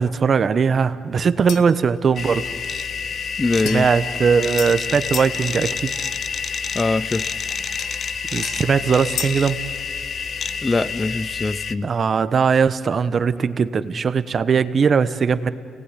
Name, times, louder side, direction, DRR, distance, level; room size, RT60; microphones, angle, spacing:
voice 1, 0.0-2.5 3.7-5.9 8.3-9.6 11.8-15.5, right 6 dB, 45° right, 13 dB, 1.0 m, -19 dB
sound 1, 1.5-1.8 3.7-5.4 7.8-9.5, left 7 dB, 80° left, 1.7 m, -34 dB
sound 2, 2.2-11.7, left 6 dB, 50° left, 0.9 m, -28 dB
voice 2, 3.4-3.9 6.7-7.2 10.6-11.9, left 3 dB, 25° left, 17 dB, 0.6 m, -22 dB
29.5 x 18.5 x 9.9 m, 2.3 s
cardioid pair, 90°, 0 cm